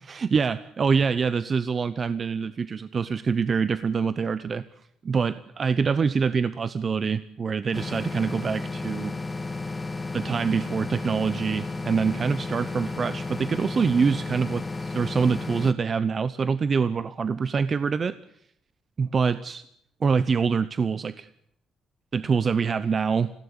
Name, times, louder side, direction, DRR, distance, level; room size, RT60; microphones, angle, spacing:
voice 1, 0.1-4.6 5.0-9.1 10.1-18.2 19.0-19.6 20.0-21.3 22.1-23.3, right 5 dB, 45° right, 15 dB, 0.8 m, -25 dB
sound 1, 7.7-15.7, left 3 dB, 20° left, 1.5 m, -33 dB
20.0 x 16.5 x 9.6 m, 0.74 s
cardioid pair, 90°, 0 cm